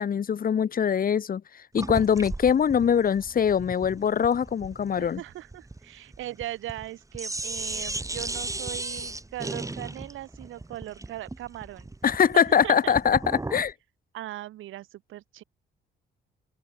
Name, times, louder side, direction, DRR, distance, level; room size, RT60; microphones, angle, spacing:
voice 1, 0.0-1.4 1.7-5.2 12.0-13.2 13.5-13.7, left 7 dB, 45° left, 1.5 m, -23 dB
sound 1, 1.8-6.9 7.1-13.7, right 2 dB, 15° right, 7.2 m, -36 dB
voice 2, 5.0-11.9 12.6-12.9 14.1-15.4, right 14 dB, 85° right, 5.0 m, -39 dB
open air
cardioid pair, 90°, 20 cm